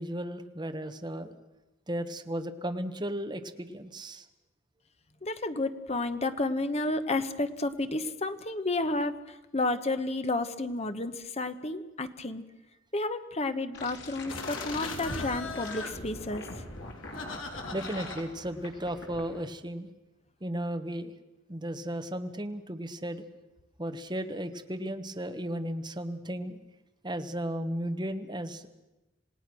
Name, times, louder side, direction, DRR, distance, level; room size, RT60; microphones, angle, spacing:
voice 1, 0.0-1.3 1.9-4.3 17.7-19.9 20.4-21.1 21.5-23.2 23.8-26.6 27.0-28.7, right 1 dB, 20° right, 7 dB, 1.2 m, -35 dB
voice 2, 5.2-9.1 9.5-12.4 12.9-16.4, left 2 dB, 30° left, 10 dB, 1.1 m, -31 dB
sound 1, 13.7-18.2 18.6-19.2, left 2 dB, 60° left, 4.0 m, -43 dB
sound 2, 14.3-19.5, left 3 dB, 85° left, 3.0 m, -40 dB
27.5 x 18.0 x 6.2 m, 1.0 s
head